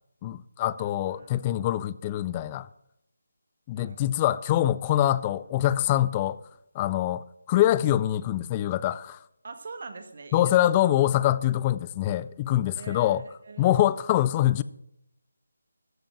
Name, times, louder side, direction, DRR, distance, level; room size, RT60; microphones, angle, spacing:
voice 1, 0.2-2.7 3.7-6.4 6.7-9.2 10.3-13.2 13.6-14.6, left 13 dB, 20° left, 0.4 m, -24 dB
voice 2, 0.8-1.6 3.7-4.1 9.4-10.5 12.8-13.9, right 4 dB, 50° right, 1.5 m, -44 dB
14.0 x 5.2 x 8.4 m
figure-of-eight pair, 160°, 0 cm